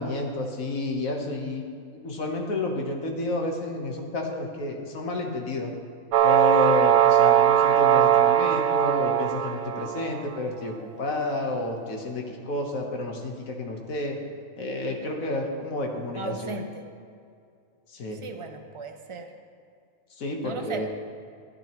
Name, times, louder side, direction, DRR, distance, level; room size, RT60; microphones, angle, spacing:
voice 1, 0.0-1.6 2.0-5.7 6.2-14.2 14.6-16.6 17.9-18.2 20.2-20.9, left 2 dB, 70° left, 2 dB, 1.5 m, -30 dB
sound 1, 6.1-10.2, right 10 dB, 75° right, 1.0 m, -20 dB
voice 2, 16.2-16.8 18.1-19.3 20.4-20.9, right 3 dB, 50° right, 5 dB, 0.3 m, -36 dB
11.5 x 10.0 x 3.0 m, 2.4 s
omnidirectional pair, 1.5 m